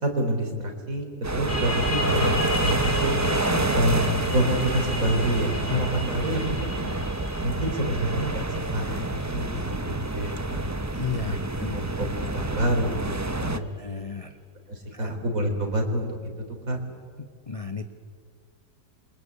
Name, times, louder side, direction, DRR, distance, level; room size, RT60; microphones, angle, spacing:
voice 1, 0.0-3.2 3.7-6.7 7.4-10.6 11.2-13.7 14.7-16.2 16.7-16.8, right 1 dB, 50° right, 3 dB, 4.2 m, -28 dB
sound 1, 1.2-13.6, right 2 dB, 20° right, 0.4 m, -28 dB
sound 2, 1.5-12.8, left 2 dB, 90° left, 4.5 m, -37 dB
sound 3, 1.6-7.4 7.8-8.0 8.3-8.4, left 1 dB, 70° left, 6.0 m, -33 dB
voice 2, 10.9-11.8 13.5-14.4 14.9-15.1 17.5-17.9, left 5 dB, 25° left, 8 dB, 0.8 m, -33 dB
28.0 x 25.0 x 8.4 m, 2.1 s
omnidirectional pair, 1.9 m